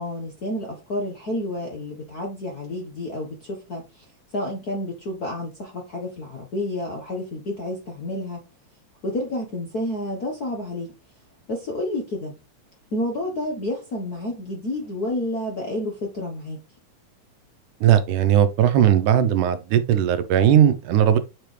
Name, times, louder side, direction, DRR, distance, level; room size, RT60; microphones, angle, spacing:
voice 1, 0.0-4.0 4.3-8.4 9.0-10.9 11.5-12.3 12.9-16.6, left 1 dB, 55° left, 1.1 m, -30 dB
voice 2, 17.8-21.2, right 10 dB, 85° right, 2.2 m, -18 dB
7.6 x 4.5 x 3.3 m
omnidirectional pair, 3.5 m